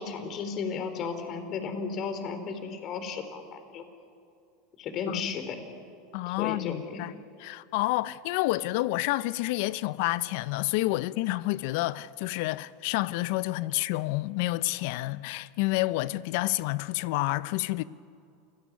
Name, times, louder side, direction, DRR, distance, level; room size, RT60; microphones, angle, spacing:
voice 1, 0.0-3.8 4.8-5.6 6.3-7.1, left 5 dB, 45° left, 4.0 m, -34 dB
voice 2, 6.1-7.1 7.4-17.8, left 18 dB, 65° left, 0.7 m, -29 dB
28.0 x 17.5 x 9.7 m
hypercardioid pair, 95°, 0 cm